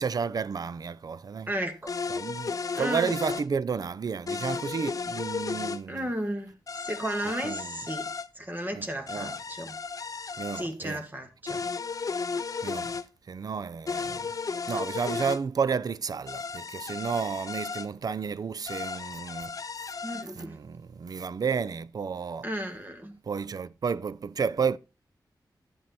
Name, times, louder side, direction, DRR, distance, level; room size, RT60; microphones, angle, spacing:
voice 1, 0.0-1.5 2.1-6.1 7.3-7.8 8.7-9.4 10.4-11.1 11.5-11.6 12.6-13.0 13.3-14.3 14.7-19.5 20.4-22.5 23.3-24.8, right 6 dB, 60° right, 0.5 m, -32 dB
voice 2, 1.5-1.9 2.8-3.1 5.9-6.5 6.9-8.1 8.4-9.7 10.6-11.6 20.0-20.5 22.4-23.1, right 1 dB, 25° right, 2.0 m, -34 dB
sound 1, 1.9-3.5 4.3-5.8 6.7-8.3 9.1-10.7 11.5-13.0 13.9-15.4 16.3-17.9 18.7-20.3, left 5 dB, 50° left, 0.6 m, -34 dB
11.0 x 7.6 x 4.1 m
wide cardioid pair, 80°, 7 cm